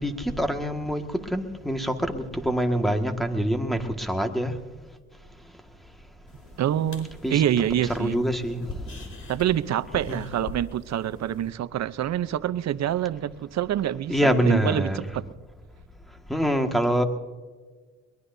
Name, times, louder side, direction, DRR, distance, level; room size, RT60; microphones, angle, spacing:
voice 1, 0.0-4.6 7.2-7.4 8.0-9.1 10.1-10.2 14.1-15.0 16.3-17.0, equal, ahead, 5 dB, 1.8 m, -25 dB
sound 1, 6.3-11.5, left 2 dB, 45° left, 4.6 m, -43 dB
voice 2, 6.6-8.2 9.3-15.2, right 11 dB, 60° right, 14 dB, 0.8 m, -26 dB
22.5 x 21.5 x 2.7 m, 1.4 s
cardioid pair, 90°, 30 cm